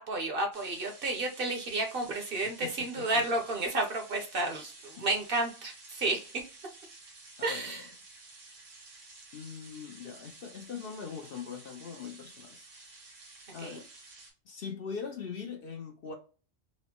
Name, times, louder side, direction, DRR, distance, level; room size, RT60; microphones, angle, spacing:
voice 1, 0.0-6.3 7.4-7.9 13.6-13.8, right 2 dB, 55° right, 0.8 m, -31 dB
sound 1, 0.5-14.3, right 3 dB, 75° right, 1.5 m, -52 dB
voice 2, 2.6-3.2 5.0-5.1 7.4-7.8 9.3-12.7 13.5-13.9 14.5-16.1, left 6 dB, 55° left, 0.7 m, -41 dB
4.3 x 2.0 x 2.8 m
omnidirectional pair, 1.3 m